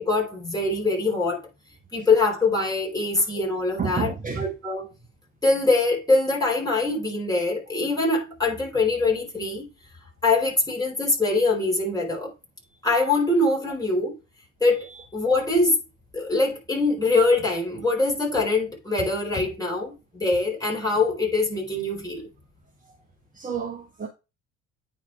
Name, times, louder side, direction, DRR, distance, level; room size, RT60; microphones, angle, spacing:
voice 1, 0.0-1.4 1.9-4.9 5.4-9.6 10.2-12.3 12.8-14.1 14.6-15.8 16.1-22.3, left 3 dB, 10° left, 4.6 m, -23 dB
voice 2, 3.8-4.4 23.3-24.1, right 6 dB, 20° right, 1.4 m, -30 dB
9.0 x 5.7 x 3.5 m
figure-of-eight pair, 55°, 38 cm